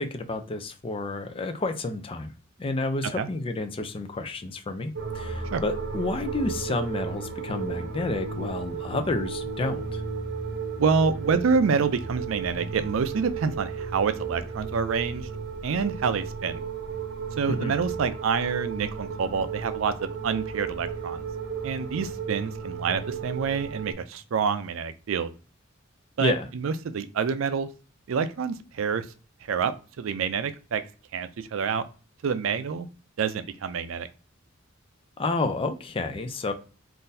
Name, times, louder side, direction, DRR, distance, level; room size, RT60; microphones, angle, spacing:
voice 1, 0.0-2.3 2.6-10.0 17.5-17.7 26.2-26.5 35.2-36.5, left 2 dB, 25° left, 0.4 m, -30 dB
sound 1, 4.9-23.9, right 5 dB, 60° right, 1.0 m, -34 dB
voice 2, 10.8-15.3 15.6-16.6 17.4-21.2 21.6-25.3 26.2-27.7 28.1-29.1 29.5-30.8 31.1-31.8 32.2-32.9 33.2-34.1, right 5 dB, 75° right, 0.4 m, -27 dB
3.8 x 2.5 x 2.6 m
head